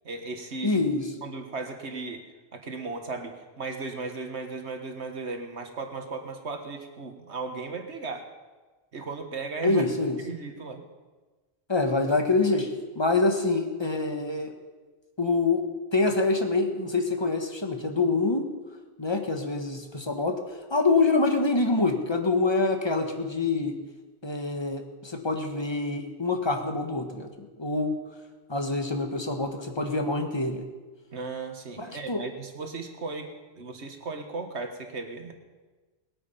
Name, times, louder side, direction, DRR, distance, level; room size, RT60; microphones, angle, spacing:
voice 1, 0.1-0.8 1.2-2.2 2.5-8.3 8.9-9.9 10.2-10.8 31.1-33.3 33.6-35.3, right 3 dB, 85° right, 5 dB, 1.8 m, -36 dB
voice 2, 0.6-1.1 9.6-10.2 11.7-14.5 15.2-18.5 19.0-20.4 20.7-23.8 24.2-28.0 28.5-30.6 31.8-32.2, left 3 dB, 25° left, 5 dB, 1.4 m, -26 dB
20.5 x 8.9 x 5.7 m, 1.3 s
omnidirectional pair, 1.1 m